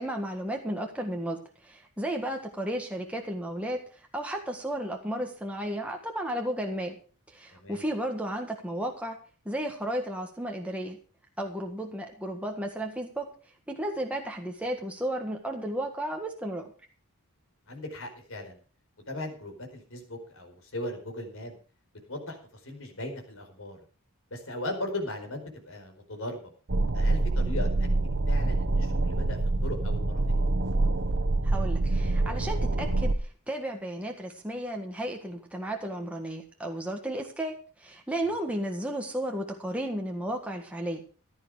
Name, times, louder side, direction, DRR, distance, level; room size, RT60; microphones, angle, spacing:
voice 1, 0.0-1.4 1.6-7.0 7.3-9.2 9.4-11.0 11.4-13.3 13.7-16.7 31.4-41.0, right 1 dB, 5° right, 2 dB, 1.6 m, -33 dB
voice 2, 7.5-7.8 17.7-18.6 19.1-21.6 22.1-22.4 22.6-23.8 24.3-26.5 26.9-27.9 28.3-30.2, left 1 dB, 60° left, 3 dB, 4.7 m, -38 dB
sound 1, 26.7-33.1, right 2 dB, 60° right, 1.2 m, -26 dB
15.5 x 11.5 x 4.9 m, 0.38 s
head